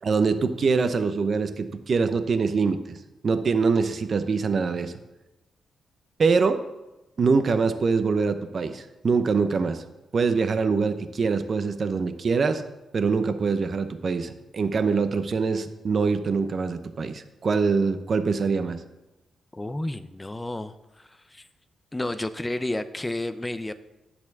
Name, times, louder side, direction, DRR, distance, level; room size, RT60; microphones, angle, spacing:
voice 1, 0.0-3.0 3.2-4.9 6.2-6.6 7.2-9.8 10.1-12.6 12.9-18.8, right 4 dB, 45° right, 9 dB, 0.7 m, -24 dB
voice 2, 19.5-21.5 21.9-23.7, left 1 dB, 15° left, 11 dB, 0.5 m, -31 dB
10.5 x 4.3 x 7.0 m, 1.0 s
cardioid pair, 90°, 0 cm